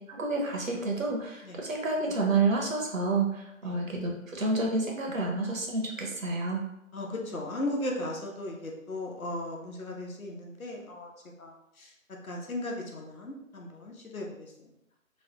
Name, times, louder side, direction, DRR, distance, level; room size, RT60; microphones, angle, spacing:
voice 1, 0.1-6.6, right 3 dB, 70° right, 0 dB, 0.9 m, -29 dB
voice 2, 6.9-11.1 11.4-11.9 12.2-14.7, left 1 dB, 80° left, 0 dB, 0.9 m, -36 dB
3.1 x 2.1 x 2.9 m, 0.85 s
figure-of-eight pair, 155°, 41 cm